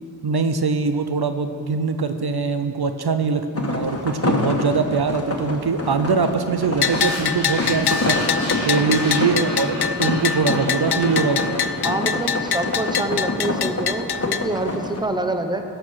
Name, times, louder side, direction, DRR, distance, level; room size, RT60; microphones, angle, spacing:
voice 1, 0.2-8.3 8.6-11.6, right 4 dB, 65° right, 8 dB, 0.7 m, -22 dB
sound 1, 3.6-15.0, left 2 dB, 35° left, 1.4 m, -27 dB
Bell, 6.8-14.4, left 8 dB, 70° left, 0.5 m, -25 dB
sound 2, 6.8-13.3, right 1 dB, 45° right, 3.4 m, -34 dB
voice 2, 11.8-15.6, right 2 dB, 10° right, 6 dB, 0.9 m, -26 dB
16.5 x 6.6 x 6.3 m, 2.6 s
wide cardioid pair, 50°, 41 cm